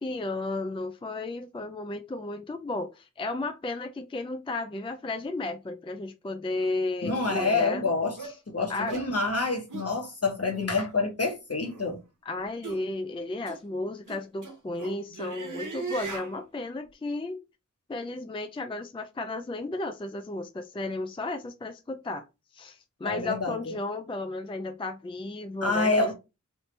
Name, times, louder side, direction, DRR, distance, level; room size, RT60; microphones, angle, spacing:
voice 1, 0.0-7.9 8.2-8.4 8.7-9.0 12.3-17.4 17.9-22.2 22.5-26.1, left 2 dB, 20° left, 0.4 m, -34 dB
sound 1, 6.6-6.7 7.3-7.5 8.2-8.4 8.9-9.1 9.7-9.9 10.5-10.7 11.6-11.9 12.6-12.8 13.5-13.6 14.1-16.3, right 3 dB, 85° right, 0.9 m, -38 dB
voice 2, 7.0-8.2 8.5-12.0 23.0-23.5 25.6-26.1, left 3 dB, 50° left, 1.1 m, -27 dB
3.3 x 2.7 x 3.1 m
wide cardioid pair, 50°, 30 cm